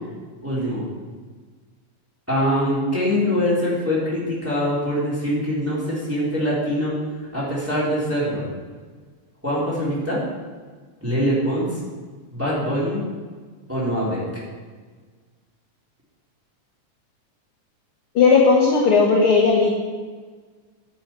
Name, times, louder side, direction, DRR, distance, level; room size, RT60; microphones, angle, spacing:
voice 1, 0.4-0.8 2.3-6.9 7.3-8.4 9.4-10.2 11.0-11.7 12.3-13.0 13.7-14.2, equal, 5° right, -8 dB, 3.0 m, -23 dB
voice 2, 18.1-19.7, left 4 dB, 60° left, -1 dB, 1.5 m, -16 dB
10.0 x 7.9 x 4.5 m, 1.5 s
omnidirectional pair, 3.7 m